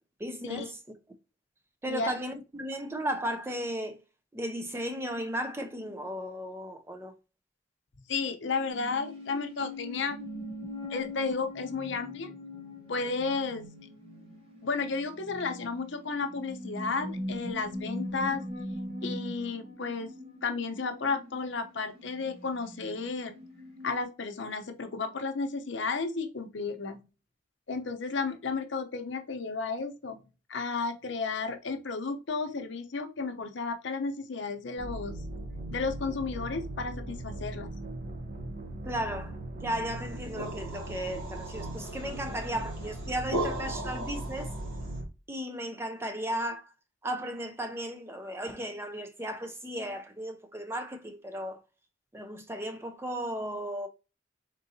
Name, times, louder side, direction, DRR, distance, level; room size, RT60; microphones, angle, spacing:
voice 1, 0.2-0.8 1.8-4.0 4.3-7.1 38.9-44.5 45.3-46.7 47.0-51.6 52.1-53.9, equal, 10° right, 0.4 m, -35 dB
voice 2, 8.1-10.2 10.9-12.3 12.9-13.7 14.6-18.4 19.0-20.1 20.4-23.4 23.8-27.1 27.7-30.2 30.5-35.2 35.7-37.8, left 4 dB, 70° left, 0.7 m, -33 dB
sound 1, 8.7-24.0, left 1 dB, 30° right, 1.2 m, -41 dB
sound 2, 34.8-45.1, right 1 dB, 45° right, 0.7 m, -39 dB
sound 3, 40.0-45.0, right 1 dB, 80° right, 1.8 m, -38 dB
3.9 x 3.7 x 2.6 m
head